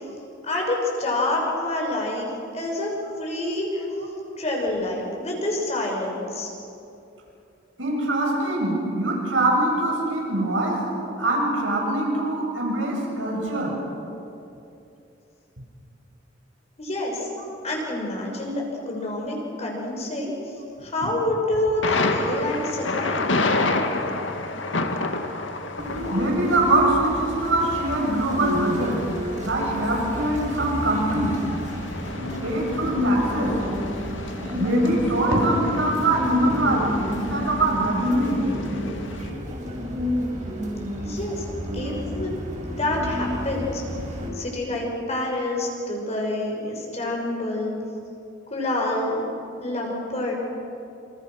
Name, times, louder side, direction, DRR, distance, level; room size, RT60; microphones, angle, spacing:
voice 1, 0.4-2.3 2.5-2.9 3.2-3.9 4.4-6.5 16.8-17.3 17.6-20.3 20.8-23.3 41.0-41.4 41.7-43.8 44.4-47.7 48.5-49.3 49.6-50.3, left 1 dB, 35° left, -1 dB, 6.1 m, -27 dB
voice 2, 7.8-10.8 11.2-13.7 26.1-29.0 29.4-31.3 32.4-33.5 34.5-38.4, right 2 dB, 90° right, -2 dB, 7.9 m, -23 dB
Thunder, 21.8-39.3, left 3 dB, 85° left, 2.1 m, -31 dB
sound 1, 25.8-44.3, left 1 dB, 40° right, 7.0 m, -29 dB
27.5 x 27.5 x 6.5 m, 2.8 s
head